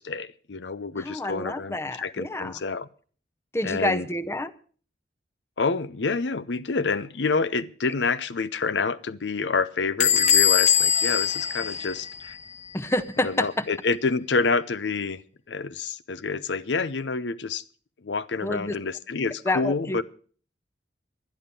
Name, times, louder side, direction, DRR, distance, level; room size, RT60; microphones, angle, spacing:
voice 1, 0.0-2.9 3.6-4.1 5.6-12.4 13.2-15.2 15.5-17.6 18.0-20.0, left 4 dB, 85° left, 0.7 m, -28 dB
voice 2, 1.0-2.6 3.5-4.5 12.7-13.6 18.4-18.8 19.4-20.0, left 1 dB, 15° left, 0.7 m, -28 dB
Bell / Squeak, 10.0-12.5, left 8 dB, 40° left, 1.1 m, -22 dB
11.5 x 10.5 x 6.8 m
head